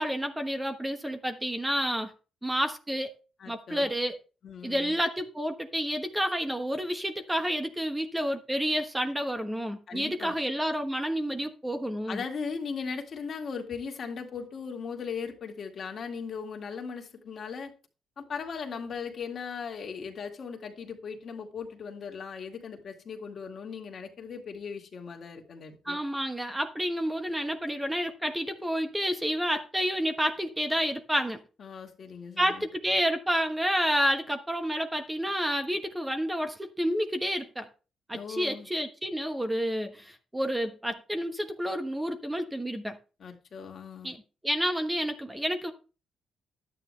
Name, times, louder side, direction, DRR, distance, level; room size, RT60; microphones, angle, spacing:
voice 1, 0.0-2.1 2.4-3.1 3.5-4.2 4.6-12.2 25.8-31.4 32.4-37.7 38.1-43.0 44.0-44.2 44.4-45.7, equal, 10° right, 1.2 m, -29 dB
voice 2, 3.4-3.9 4.4-5.0 9.9-10.4 12.1-17.7 18.2-26.0 31.6-32.7 38.1-38.7 43.2-44.1, left 6 dB, 50° left, 2.1 m, -38 dB
11.5 x 9.1 x 3.3 m
cardioid pair, 90°, 0 cm